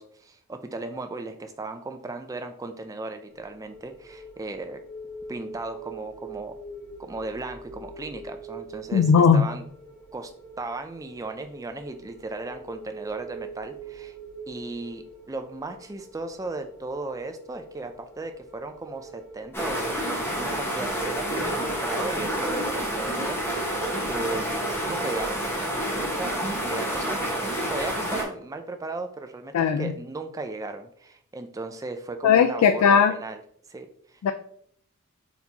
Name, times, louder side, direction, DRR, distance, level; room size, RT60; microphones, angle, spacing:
voice 1, 0.0-4.8 5.3-6.6 7.0-9.6 10.1-10.3 10.6-14.2 14.5-23.6 24.0-24.5 24.8-25.4 25.9-26.4 26.7-27.2 27.7-33.4 33.7-34.2, right 3 dB, 15° right, 7 dB, 0.3 m, -36 dB
sound 1, 3.3-23.2, right 2 dB, 30° left, 1.3 m, -44 dB
voice 2, 8.9-9.5 29.5-29.9 32.2-33.1 34.2-34.3, left 6 dB, 85° left, 9 dB, 0.3 m, -18 dB
sound 2, 19.5-28.2, right 1 dB, 10° left, 1.0 m, -28 dB
4.2 x 4.0 x 2.8 m, 0.65 s
head